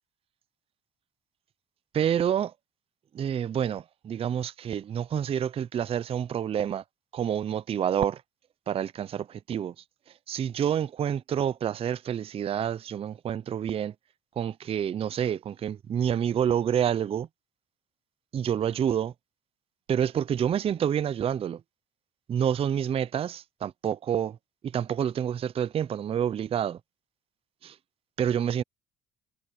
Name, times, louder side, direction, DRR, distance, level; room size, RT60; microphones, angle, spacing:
voice 1, 1.9-2.5 3.1-6.8 7.1-8.2 8.7-9.7 10.3-13.9 14.4-17.3 18.3-19.1 19.9-21.6 22.3-24.4 24.6-26.8 27.6-27.8 28.2-28.6, right 9 dB, 35° right, 0.4 m, -28 dB
cardioid pair, 110°, 17 cm